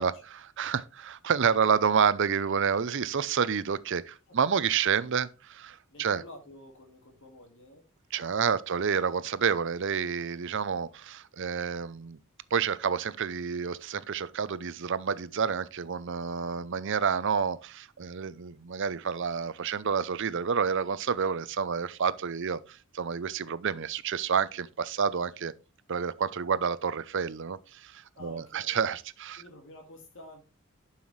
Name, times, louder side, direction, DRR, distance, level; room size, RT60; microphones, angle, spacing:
voice 1, 0.0-6.2 8.1-12.2 12.5-25.5 25.9-29.4, right 6 dB, 60° right, 0.6 m, -29 dB
voice 2, 4.3-4.7 5.9-7.9 8.2-8.7 16.4-16.7 28.2-29.0 29.4-30.4, left 1 dB, 65° left, 2.0 m, -50 dB
11.0 x 5.7 x 3.2 m
head